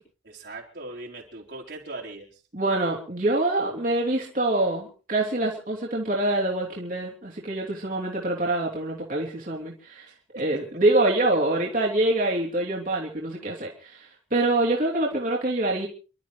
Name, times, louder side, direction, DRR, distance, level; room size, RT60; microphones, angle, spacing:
voice 1, 0.2-2.4 10.3-10.6, right 2 dB, 65° right, -2 dB, 4.2 m, -40 dB
voice 2, 2.5-10.1 10.3-15.9, right 2 dB, 45° right, -3 dB, 3.2 m, -25 dB
29.5 x 12.5 x 3.2 m, 0.36 s
head